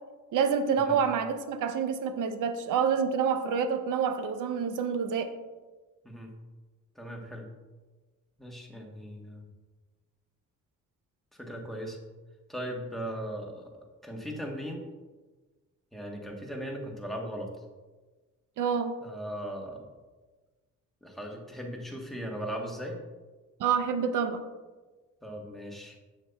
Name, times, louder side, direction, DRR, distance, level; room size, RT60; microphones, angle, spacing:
voice 1, 0.3-5.3 18.6-19.0 23.6-24.4, right 6 dB, 85° right, 9 dB, 0.6 m, -27 dB
voice 2, 6.9-7.5 8.4-9.5 11.3-12.0 12.5-13.7 14.0-14.8 15.9-17.5 19.0-19.8 21.0-23.0 25.2-26.0, equal, ahead, 0 dB, 1.1 m, -38 dB
7.2 x 6.8 x 2.2 m, 1.3 s
cardioid pair, 115°, 30 cm